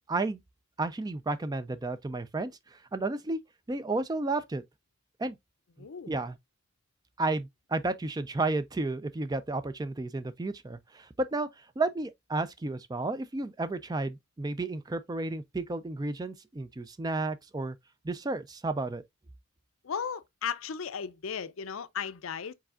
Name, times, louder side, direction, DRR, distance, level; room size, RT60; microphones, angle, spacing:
voice 1, 0.1-0.4 0.8-3.4 3.7-4.6 5.2-5.4 6.1-6.4 7.2-17.8 18.0-19.0, right 2 dB, 20° right, 0.3 m, -32 dB
voice 2, 5.8-6.2 19.8-22.5, left 7 dB, 70° left, 0.5 m, -36 dB
4.8 x 4.2 x 2.4 m
head